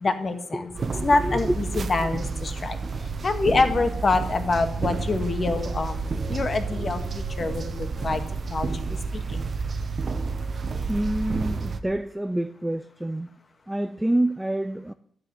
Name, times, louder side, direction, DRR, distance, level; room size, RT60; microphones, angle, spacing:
voice 1, 0.0-0.7 1.0-2.8 3.2-8.2 8.5-9.4, left 3 dB, 35° left, 7 dB, 1.8 m, -26 dB
voice 2, 0.5-1.5 6.7-7.1 10.9-13.3 13.7-14.9, right 1 dB, 5° right, 11 dB, 0.5 m, -28 dB
sound 1, 0.7-11.8, right 4 dB, 40° right, 1.2 m, -30 dB
13.0 x 7.7 x 9.8 m, 0.66 s
wide cardioid pair, 130°, 0 cm